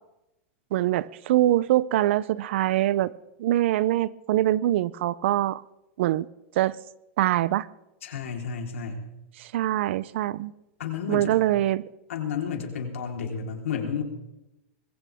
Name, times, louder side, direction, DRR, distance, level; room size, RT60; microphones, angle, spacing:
voice 1, 0.7-3.1 3.4-5.6 6.0-6.3 6.6-6.8 7.2-7.7 9.4-10.5 11.1-11.8, right 14 dB, 65° right, 0.5 m, -23 dB
voice 2, 8.0-9.1 10.8-11.4 12.1-14.0, left 6 dB, 85° left, 3.8 m, -31 dB
21.5 x 16.5 x 3.5 m
supercardioid pair, 140°, 7 cm